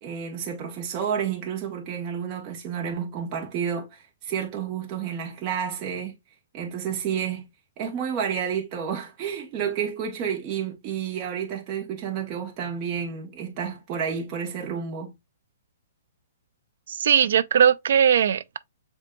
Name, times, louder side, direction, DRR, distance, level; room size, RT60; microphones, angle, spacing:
voice 1, 0.0-6.1 6.5-7.5 7.8-15.1, right 7 dB, 35° right, 1.2 m, -30 dB
voice 2, 16.9-18.6, right 8 dB, 65° right, 0.4 m, -19 dB
7.4 x 2.6 x 2.3 m
figure-of-eight pair, 120°, 0 cm